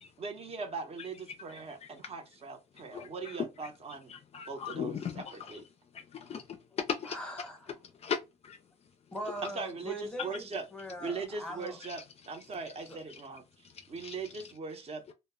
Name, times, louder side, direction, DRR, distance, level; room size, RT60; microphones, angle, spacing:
voice 1, 0.2-4.1 4.5-5.6 9.4-10.6 11.0-12.0 12.3-13.4 13.9-15.1, right 4 dB, 35° right, 0.7 m, -40 dB
voice 2, 2.9-3.5 4.1-5.5 5.9-7.2 8.0-8.2 8.4-8.6 13.7-14.1, left 7 dB, 40° left, 0.4 m, -37 dB
voice 3, 7.0-7.7 9.1-11.8 12.9-13.0, right 1 dB, 5° left, 0.9 m, -41 dB
2.1 x 2.0 x 3.4 m
cardioid pair, 110°, 17 cm